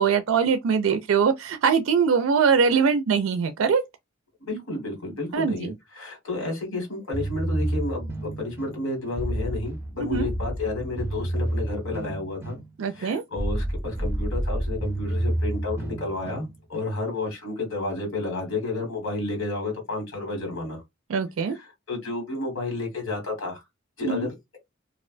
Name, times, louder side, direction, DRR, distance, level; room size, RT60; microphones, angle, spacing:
voice 1, 0.0-3.8 5.3-5.7 10.1-10.3 12.8-13.2 21.1-21.6 24.0-24.3, right 6 dB, 80° right, 0.4 m, -22 dB
voice 2, 4.4-12.6 12.9-20.8 21.9-23.6 24.0-24.3, left 2 dB, 90° left, 1.4 m, -31 dB
sound 1, 7.1-16.9, right 1 dB, 10° right, 0.4 m, -30 dB
2.4 x 2.1 x 2.4 m
head